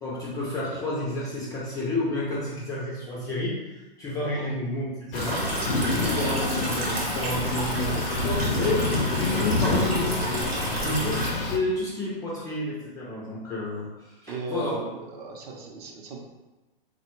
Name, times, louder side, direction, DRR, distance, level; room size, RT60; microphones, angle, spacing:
voice 1, 0.0-5.5 6.0-10.2 10.8-14.8, left 2 dB, 10° left, -6 dB, 0.4 m, -30 dB
sound 1, 5.1-11.6, left 2 dB, 65° left, 0.5 m, -28 dB
sound 2, 5.1-11.3, right 1 dB, 90° right, 1.0 m, -31 dB
voice 2, 14.2-16.2, right 3 dB, 40° right, 0 dB, 0.6 m, -36 dB
3.5 x 2.2 x 2.9 m, 1.1 s
hypercardioid pair, 120°, 30 cm